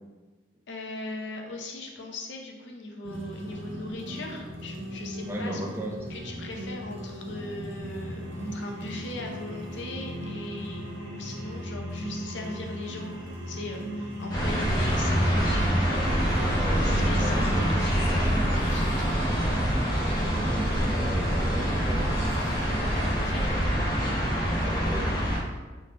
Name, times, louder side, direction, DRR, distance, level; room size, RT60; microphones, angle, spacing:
voice 1, 0.7-5.6 6.1-10.8 11.1-16.3 16.8-19.4 22.6-23.7, left 2 dB, 65° left, 1 dB, 0.5 m, -39 dB
sound 1, 3.0-18.0, equal, 75° right, 0.8 m, -37 dB
voice 2, 5.3-5.9 16.1-17.7 20.0-22.1 24.6-25.2, right 1 dB, 10° right, -1 dB, 0.3 m, -35 dB
sound 2, 14.3-25.4, equal, 20° left, 0.9 m, -26 dB
sound 3, 16.1-23.5, equal, 30° right, 0.8 m, -32 dB
3.5 x 3.2 x 2.8 m, 1.2 s
head